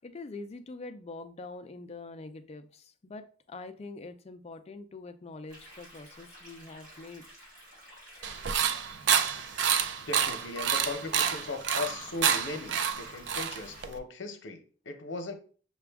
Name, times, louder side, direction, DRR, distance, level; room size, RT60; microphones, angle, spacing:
voice 1, 0.0-7.3, left 3 dB, 35° left, 0.4 m, -44 dB
sound 1, 5.5-13.9, equal, 45° right, 2.3 m, -52 dB
sound 2, 8.2-14.0, right 8 dB, 65° right, 0.4 m, -28 dB
voice 2, 10.0-15.3, left 3 dB, 80° left, 0.7 m, -38 dB
5.8 x 2.3 x 3.4 m
head